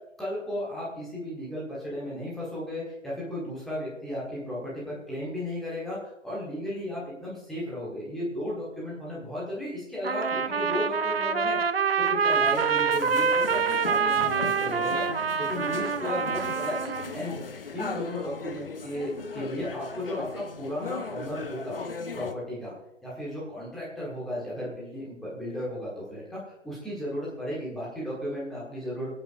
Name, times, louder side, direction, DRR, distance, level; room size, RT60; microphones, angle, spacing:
voice 1, 0.0-11.6 12.0-16.8 17.1-17.4 17.7-21.8 22.1-22.8 23.0-29.1, left 1 dB, ahead, -7 dB, 1.4 m, -35 dB
Trumpet, 10.0-17.2, right 6 dB, 50° right, 0.6 m, -26 dB
sound 1, 12.3-22.3, left 4 dB, 45° left, 0.9 m, -38 dB
24.0 x 8.8 x 2.5 m, 0.92 s
figure-of-eight pair, 145°, 38 cm